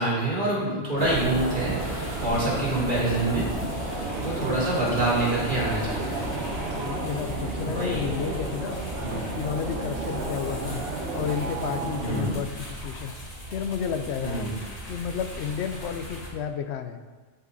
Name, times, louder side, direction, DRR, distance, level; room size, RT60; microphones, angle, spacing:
voice 1, 0.0-6.3 7.6-8.2 9.0-9.2 12.0-12.3 14.2-14.5, right 2 dB, 45° right, -8 dB, 3.2 m, -27 dB
voice 2, 0.7-1.1 6.8-8.8 9.1-10.8 11.1-13.1 13.5-14.5 14.9-17.0, left 8 dB, 70° left, 9 dB, 0.9 m, -31 dB
sound 1, 1.0-16.3, equal, 35° left, 2.0 m, -39 dB
sound 2, 1.0-12.3, right 2 dB, 65° right, 1.4 m, -32 dB
12.5 x 5.5 x 4.0 m, 1.4 s
omnidirectional pair, 1.2 m